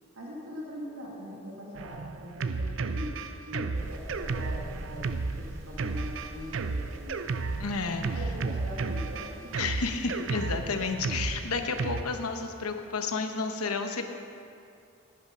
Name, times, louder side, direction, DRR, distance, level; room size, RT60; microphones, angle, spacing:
voice 1, 0.1-3.2 3.4-7.2 8.1-9.3, left 1 dB, 85° right, -3 dB, 1.7 m, -42 dB
Drum kit, 1.7-12.0, right 4 dB, 60° right, 0.4 m, -33 dB
sound 1, 3.7-12.2, equal, 15° right, 1.6 m, -48 dB
voice 2, 7.6-8.1 9.6-14.0, left 4 dB, 90° left, 6 dB, 0.9 m, -31 dB
11.5 x 8.8 x 5.4 m, 2.5 s
head